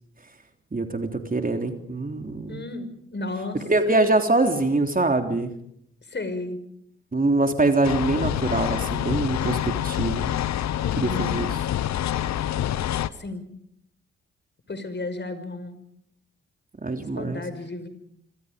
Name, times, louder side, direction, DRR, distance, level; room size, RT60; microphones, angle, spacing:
voice 1, 0.7-2.6 3.7-5.5 7.1-10.3 11.0-11.5 16.8-17.4, right 2 dB, 30° right, 5 dB, 3.5 m, -24 dB
voice 2, 2.5-4.1 6.1-6.6 10.8-11.3 13.1-13.4 14.7-15.8 17.1-17.9, left 2 dB, 35° left, 11 dB, 5.8 m, -33 dB
sound 1, 7.8-13.1, left 11 dB, 65° left, 1.0 m, -26 dB
27.0 x 26.0 x 5.3 m, 0.73 s
hypercardioid pair, 45°, 30 cm